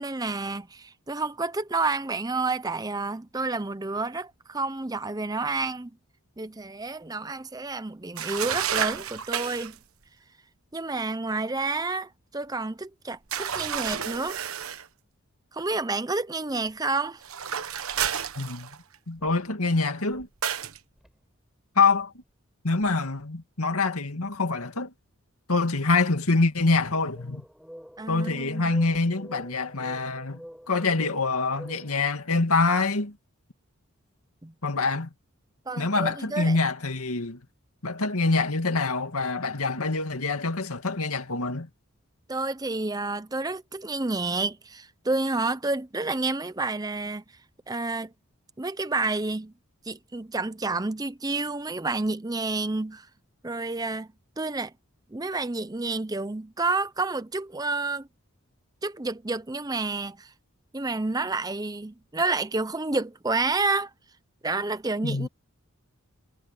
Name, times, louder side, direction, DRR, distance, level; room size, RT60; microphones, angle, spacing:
voice 1, 0.0-6.0 6.4-9.8 10.7-14.4 15.5-17.2 28.0-28.7 34.4-34.5 35.7-36.6 42.3-47.2 47.7-48.1 48.6-49.5 49.9-53.1 53.4-54.1 54.4-54.7 55.1-58.1 58.8-60.3 60.7-63.9 64.4-65.3, right 3 dB, 15° right, 0.6 m, -29 dB
sound 1, 8.2-9.8 13.3-14.9 17.2-19.0 20.4-20.8, right 8 dB, 75° right, 1.2 m, -30 dB
sound 2, 16.7-16.8 18.2-18.3 19.2-19.7 20.1-20.5 21.0-21.2 21.9-22.0 22.8-23.1 26.7-31.9, equal, ahead, 6.4 m, -47 dB
voice 2, 18.4-18.7 19.1-20.3 21.8-22.1 22.6-24.9 25.5-27.4 28.1-30.4 30.7-33.2 34.6-35.1 35.8-37.4 37.8-41.7 65.0-65.3, left 3 dB, 85° left, 2.3 m, -25 dB
head